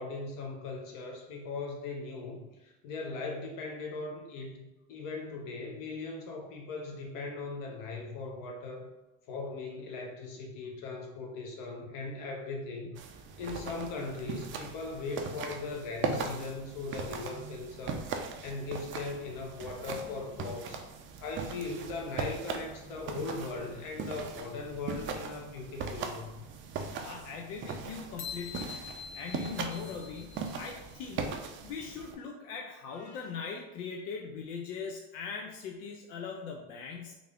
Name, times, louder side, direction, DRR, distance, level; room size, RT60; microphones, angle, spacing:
voice 1, 0.0-8.9 9.3-18.1 18.4-20.8 21.2-26.4, left 3 dB, 55° left, 1 dB, 1.0 m, -39 dB
sound 1, 13.0-32.2, right 5 dB, 35° right, 0.4 m, -39 dB
voice 2, 27.0-31.3 31.6-37.1, left 5 dB, 85° left, 1 dB, 0.6 m, -40 dB
indian bell chime, 28.2-30.8, left 7 dB, 35° left, 0.4 m, -44 dB
3.4 x 2.4 x 3.5 m, 1.0 s
supercardioid pair, 120°, 39 cm